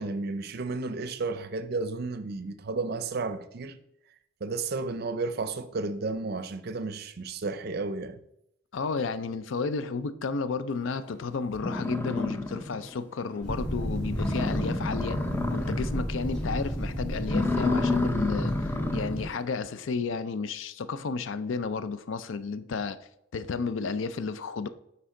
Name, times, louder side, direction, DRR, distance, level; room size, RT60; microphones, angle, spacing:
voice 1, 0.0-3.8 4.4-8.2, right 3 dB, 55° right, 0.5 m, -32 dB
voice 2, 8.7-15.2 15.5-23.0 23.3-24.7, left 4 dB, 75° left, 0.4 m, -32 dB
sound 1, 11.1-11.2 11.5-12.9 13.3-13.4 13.8-13.9 14.1-16.0 16.4-16.7 17.2-19.2, left 2 dB, 10° left, 0.5 m, -30 dB
sound 2, 13.4-19.3, equal, 60° left, 2.4 m, -32 dB
9.4 x 3.4 x 3.7 m
head